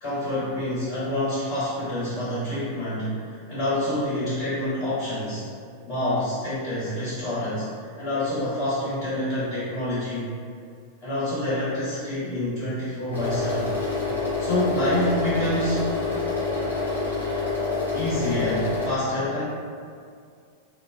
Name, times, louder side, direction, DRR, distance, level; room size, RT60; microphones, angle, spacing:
voice 1, 0.0-5.4 5.9-7.7 8.0-10.3 11.0-13.7 14.4-16.0 17.9-19.4, left 1 dB, 50° left, -12 dB, 1.0 m, -27 dB
sound 1, 13.1-18.9, left 3 dB, 85° left, 0.6 m, -27 dB
2.5 x 2.1 x 2.3 m, 2.2 s
figure-of-eight pair, 90°, 0 cm